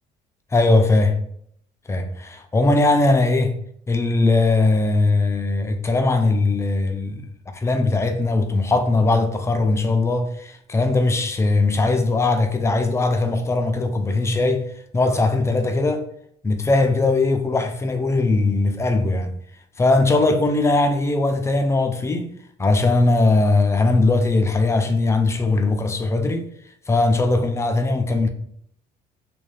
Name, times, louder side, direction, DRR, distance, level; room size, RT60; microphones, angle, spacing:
voice 1, 0.5-1.2 1.9-3.5 3.9-7.3 7.5-14.6 14.9-16.0 16.4-19.3 19.8-22.3 22.6-26.5 26.9-28.3, left 2 dB, 15° left, 0.3 m, -19 dB
2.5 x 2.2 x 3.1 m
cardioid pair, 110°, 17 cm